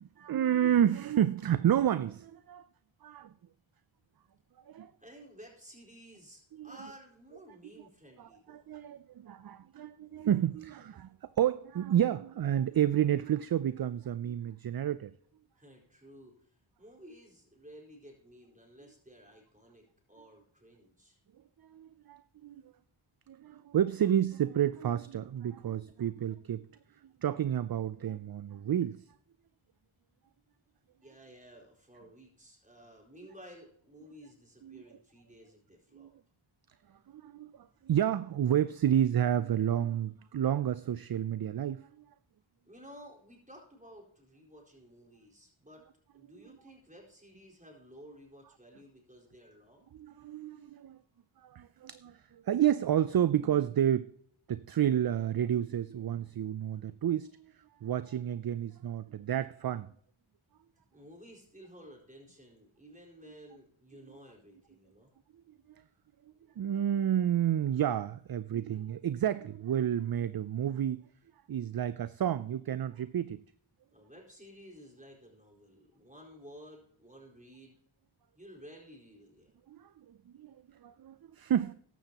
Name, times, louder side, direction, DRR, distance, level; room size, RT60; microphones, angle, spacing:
voice 1, 0.0-2.7 3.0-3.3 4.6-4.9 6.5-6.7 8.2-15.1 21.6-22.6 23.3-26.7 27.0-29.1 34.6-34.8 35.9-36.1 37.1-41.9 49.9-51.0 51.4-54.1 54.5-59.9 65.7-65.8 66.6-71.0 71.5-73.4 79.7-81.7, right 10 dB, 50° right, 0.5 m, -30 dB
voice 2, 5.0-8.7 15.5-21.2 31.0-36.1 42.6-45.9 46.1-49.8 60.8-65.1 73.9-77.8 78.4-79.6, equal, 15° right, 4.5 m, -54 dB
14.5 x 11.5 x 2.9 m
cardioid pair, 50°, 49 cm